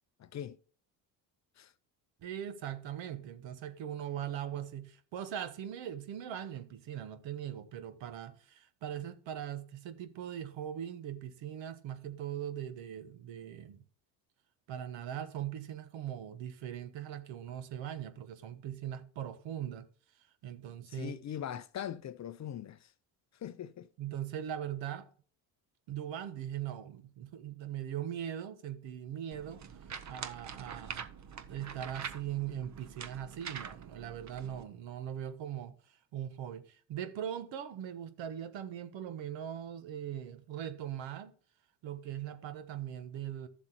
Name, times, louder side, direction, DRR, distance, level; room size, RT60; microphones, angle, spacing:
voice 1, 0.2-0.6 1.6-1.7 20.9-22.9 23.4-23.9, left 10 dB, 35° left, 0.5 m, -41 dB
voice 2, 2.2-13.8 14.7-19.9 20.4-21.2 24.0-25.1 25.9-29.6 30.1-31.0 31.5-41.3 41.8-43.5, right 10 dB, 70° right, 1.2 m, -40 dB
sound 1, 29.3-34.6, right 7 dB, 35° right, 0.9 m, -45 dB
12.5 x 7.2 x 2.9 m
supercardioid pair, 70°, 47 cm